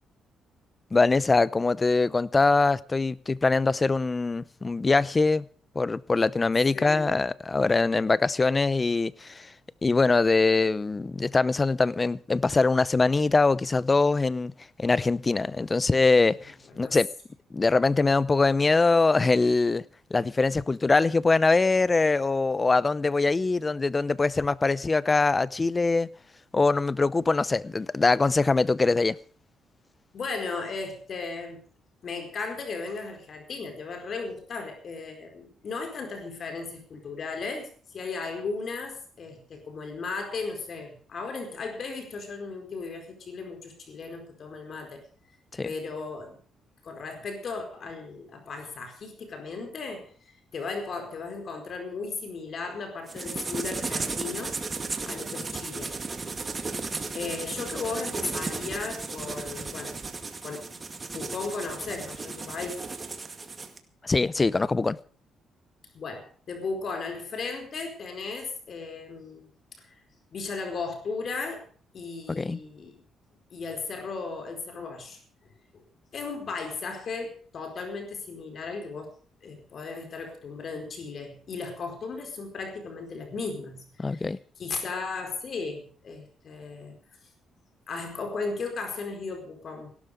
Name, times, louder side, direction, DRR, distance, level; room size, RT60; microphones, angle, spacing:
voice 1, 0.9-5.5 5.7-9.5 9.8-14.5 14.8-17.1 17.5-19.8 20.1-26.1 26.5-29.2 45.5-45.7 64.0-65.0 72.3-72.6 84.0-84.4, left 3 dB, 25° left, 0.7 m, -23 dB
voice 2, 6.7-7.1 16.7-17.0 30.1-31.6 32.0-45.0 45.6-46.4 46.8-50.1 50.5-54.6 55.0-55.9 57.1-60.0 60.4-60.8 61.1-62.8 65.9-69.5 69.8-70.0 70.3-71.7 71.9-73.0 73.5-75.2 75.7-75.8 76.1-79.1 79.4-84.3 84.6-86.9 87.9-89.9, left 4 dB, 55° left, 4.6 m, -36 dB
sound 1, 53.1-63.8, right 4 dB, 30° right, 2.1 m, -35 dB
17.0 x 12.5 x 5.1 m
cardioid pair, 90°, 0 cm